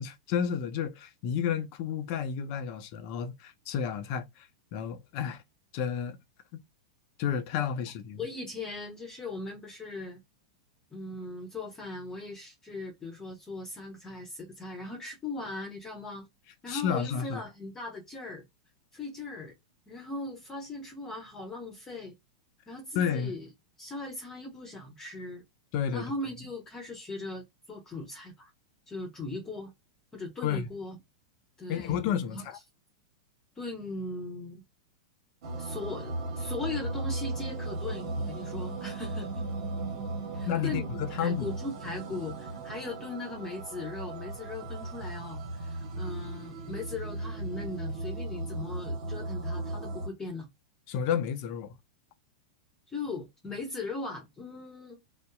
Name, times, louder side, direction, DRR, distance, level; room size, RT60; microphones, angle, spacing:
voice 1, 0.0-4.5 4.7-5.4 5.7-6.2 6.5-6.6 7.2-8.2 16.7-17.4 22.9-23.3 25.7-26.1 30.4-30.7 31.7-32.6 40.5-41.5 50.9-51.7, left 8 dB, 50° left, 0.5 m, -31 dB
voice 2, 8.2-10.2 10.9-16.3 16.6-18.4 18.9-19.5 19.9-22.1 22.7-23.5 23.8-25.4 25.9-28.5 28.9-29.7 30.1-31.0 31.6-32.0 32.3-32.4 33.6-34.6 35.6-39.5 40.3-50.5 52.9-55.0, left 3 dB, 20° left, 1.0 m, -39 dB
sound 1, 35.4-50.1, right 2 dB, 60° right, 0.9 m, -36 dB
2.6 x 2.0 x 2.3 m
hypercardioid pair, 115°, 3 cm